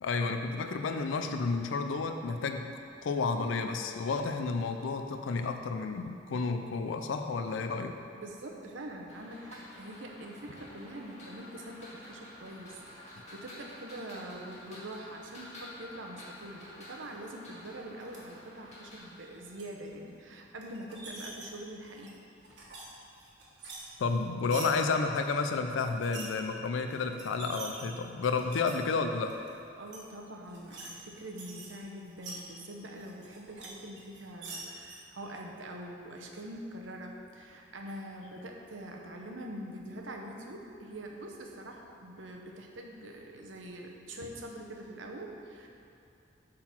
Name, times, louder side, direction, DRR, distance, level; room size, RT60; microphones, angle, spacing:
voice 1, 0.0-2.7 3.0-8.1 24.0-29.4, left 4 dB, 85° left, 7 dB, 0.4 m, -31 dB
voice 2, 8.1-22.2 22.5-22.6 29.8-45.7, right 1 dB, 85° right, 1 dB, 0.9 m, -44 dB
sound 1, 9.1-19.0, left 1 dB, 40° left, 1.7 m, -50 dB
sound 2, 18.0-18.2 19.1-19.6 20.6-21.5 21.9-22.8 23.1-24.7 25.9-26.3 26.9-27.0 27.2-28.8 29.2-29.5 29.9-30.0 30.4-30.9 31.2-32.4 33.0-33.7 34.0-35.0, right 3 dB, 70° right, 1.4 m, -45 dB
8.5 x 3.9 x 5.9 m, 2.7 s
head